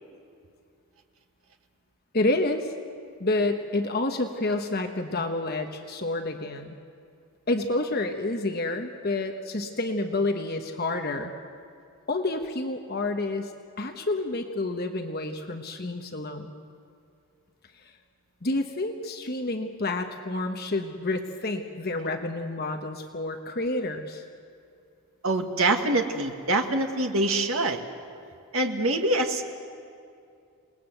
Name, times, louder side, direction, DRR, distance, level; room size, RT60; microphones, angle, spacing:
voice 1, 2.1-2.7 3.2-6.8 7.5-11.3 12.1-13.5 13.8-16.5 17.8-17.9 18.4-24.2, left 2 dB, 45° left, 5 dB, 1.2 m, -29 dB
voice 2, 25.2-27.8 28.5-29.4, right 2 dB, 65° right, 4 dB, 1.9 m, -25 dB
28.0 x 19.5 x 8.0 m, 2.5 s
head